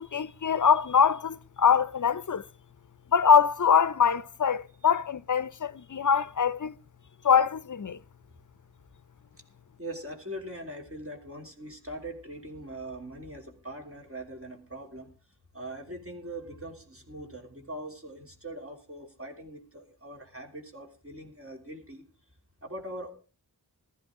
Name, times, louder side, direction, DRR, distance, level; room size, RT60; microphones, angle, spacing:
voice 1, 0.0-2.4 3.1-6.7 7.2-8.0, left 7 dB, 50° left, 0.6 m, -23 dB
voice 2, 9.8-15.1 15.5-22.0 22.6-23.1, right 1 dB, 35° right, 3.0 m, -41 dB
15.5 x 13.5 x 3.7 m
wide cardioid pair, 55°, 39 cm